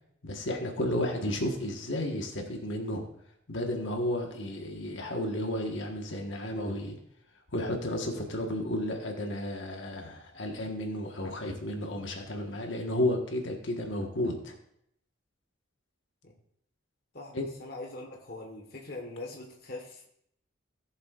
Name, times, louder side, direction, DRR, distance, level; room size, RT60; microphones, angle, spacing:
voice 1, 0.2-3.0 3.5-7.0 7.5-14.6 17.3-17.4, left 1 dB, 70° left, 2 dB, 1.5 m, -32 dB
voice 2, 17.1-20.1, left 2 dB, 50° left, 0 dB, 1.4 m, -42 dB
18.0 x 7.3 x 2.5 m, 0.73 s
head